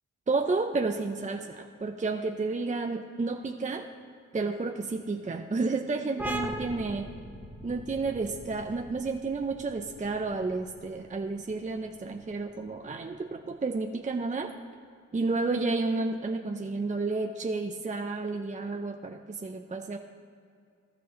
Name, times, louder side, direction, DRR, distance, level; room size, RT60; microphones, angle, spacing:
voice 1, 0.3-3.9 4.3-7.1 7.6-14.5 15.1-20.0, right 3 dB, 25° right, 5 dB, 0.5 m, -31 dB
sound 1, 6.2-13.5, right 1 dB, 5° right, 1.1 m, -41 dB
12.5 x 7.5 x 3.1 m, 2.3 s
supercardioid pair, 40°, 32 cm